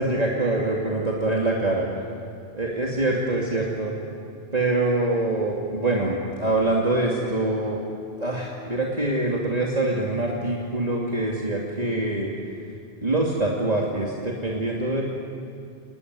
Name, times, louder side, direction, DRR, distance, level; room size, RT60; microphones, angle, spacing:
voice 1, 0.0-1.9 2.6-3.9 4.5-7.8 8.2-12.3 13.0-15.0, right 2 dB, 35° right, -3 dB, 2.7 m, -24 dB
29.0 x 19.5 x 9.7 m, 2.4 s
omnidirectional pair, 1.2 m